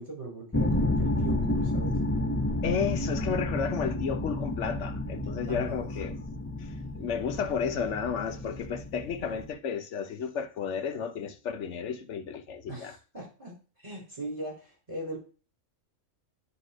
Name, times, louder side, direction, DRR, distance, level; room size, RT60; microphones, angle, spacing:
voice 1, 0.0-2.0 5.5-5.9 12.7-13.5 13.8-15.2, right 2 dB, 25° right, 5.0 m, -39 dB
sound 1, 0.5-9.5, left 1 dB, 10° left, 0.8 m, -31 dB
voice 2, 2.6-6.2 6.6-13.0, left 6 dB, 70° left, 1.2 m, -32 dB
9.9 x 3.6 x 6.1 m
omnidirectional pair, 1.3 m